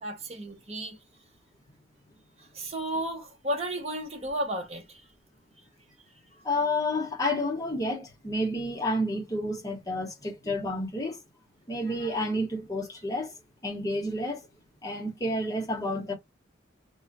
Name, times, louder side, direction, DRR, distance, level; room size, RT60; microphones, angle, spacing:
voice 1, 0.0-1.0 2.5-5.0, right 1 dB, 30° right, 0.8 m, -33 dB
voice 2, 6.4-11.2 11.7-13.3 13.6-14.4 14.8-16.1, left 1 dB, 20° left, 1.0 m, -30 dB
3.1 x 2.2 x 3.9 m
head